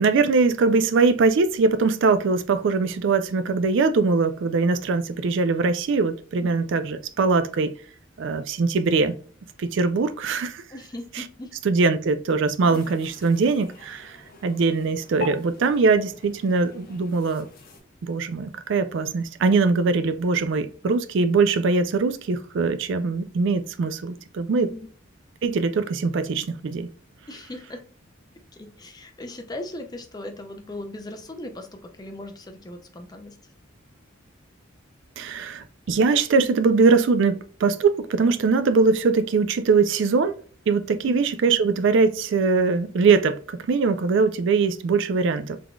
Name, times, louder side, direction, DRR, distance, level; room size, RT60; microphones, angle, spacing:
voice 1, 0.0-7.7 8.2-9.2 9.6-10.6 11.2-11.3 11.6-14.2 14.4-17.5 18.0-24.7 25.4-26.9 35.2-40.4 40.7-45.6, right 4 dB, 60° right, 0.4 m, -22 dB
voice 2, 10.7-11.5 24.5-24.8 27.3-27.8 28.5-33.4 40.9-41.2, left 1 dB, 20° left, 0.5 m, -38 dB
sound 1, 12.6-17.8, left 4 dB, 45° left, 0.9 m, -43 dB
3.6 x 3.6 x 2.2 m
head